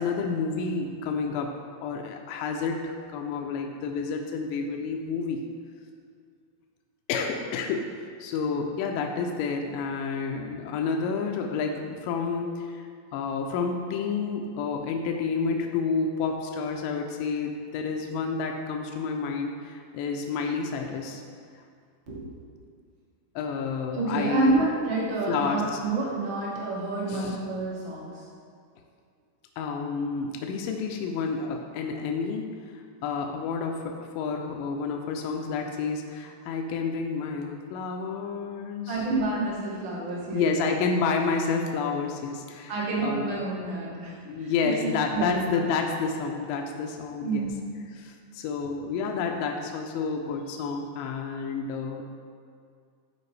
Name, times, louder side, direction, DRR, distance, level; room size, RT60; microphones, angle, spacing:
voice 1, 0.0-1.5 1.8-5.4 7.1-21.2 23.4-24.6 25.3-25.6 27.1-27.4 29.6-39.0 40.3-43.3 44.2-47.5 48.0-52.0, left 5 dB, 80° left, 2 dB, 2.1 m, -30 dB
voice 2, 23.9-28.2 38.9-40.6 42.7-45.6 47.2-47.6, right 2 dB, 55° right, -5 dB, 1.4 m, -29 dB
12.5 x 4.4 x 3.2 m, 2.2 s
omnidirectional pair, 4.1 m